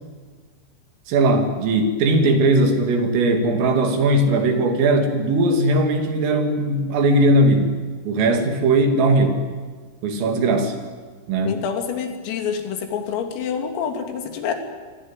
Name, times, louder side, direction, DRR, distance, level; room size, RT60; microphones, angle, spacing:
voice 1, 1.1-7.7 8.1-9.4 10.0-10.8 11.3-11.6, right 2 dB, 75° right, 5 dB, 5.5 m, -19 dB
voice 2, 11.5-14.5, left 7 dB, 80° left, 5 dB, 5.3 m, -27 dB
27.0 x 21.5 x 9.2 m, 1.5 s
omnidirectional pair, 5.9 m